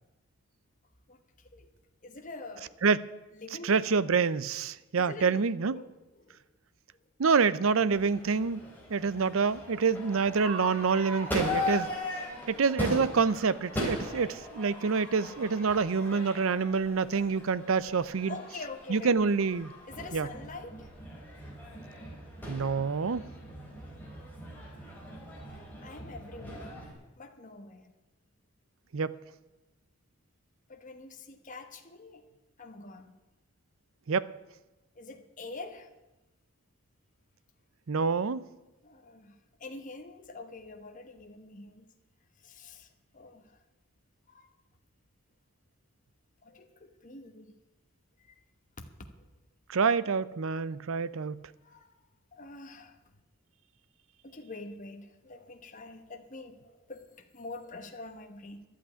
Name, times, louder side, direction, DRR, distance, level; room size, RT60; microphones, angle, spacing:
voice 1, 2.0-2.7 3.4-4.0 5.0-5.4 5.7-5.9 6.2-6.4 18.3-19.2 19.9-20.9 25.8-26.7 27.2-27.9 30.7-32.2 32.6-33.1 35.0-35.9 38.8-39.3 39.6-41.9 42.4-42.9 43.1-43.4 44.3-44.5 46.4-47.5 51.6-51.9 52.3-52.9 54.2-58.6, left 3 dB, 40° left, 1.2 m, -45 dB
voice 2, 3.6-5.8 7.2-8.6 8.9-11.9 12.5-18.4 18.9-19.7 20.1-20.3 22.5-23.2 28.9-29.1 34.1-34.3 37.9-38.4 49.7-51.4, right 5 dB, 75° right, 0.6 m, -27 dB
Crowd / Fireworks, 7.9-26.9, left 1 dB, 10° left, 3.6 m, -39 dB
11.5 x 8.2 x 9.7 m
head